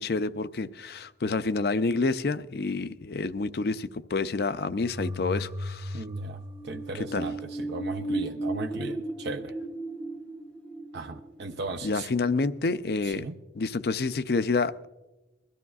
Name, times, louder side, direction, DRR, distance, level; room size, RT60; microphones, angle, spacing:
voice 1, 0.0-6.0 7.1-7.3 11.8-13.2 13.6-14.9, left 3 dB, 60° left, 13 dB, 0.5 m, -28 dB
sound 1, 4.8-7.7, left 1 dB, 30° right, 1.0 m, -37 dB
voice 2, 5.9-9.5 10.9-12.1 13.0-13.4, right 3 dB, 75° right, 5 dB, 0.6 m, -37 dB
sound 2, 6.4-12.7 13.1-13.2, right 2 dB, 5° left, 0.6 m, -36 dB
22.0 x 13.5 x 2.4 m, 1.1 s
head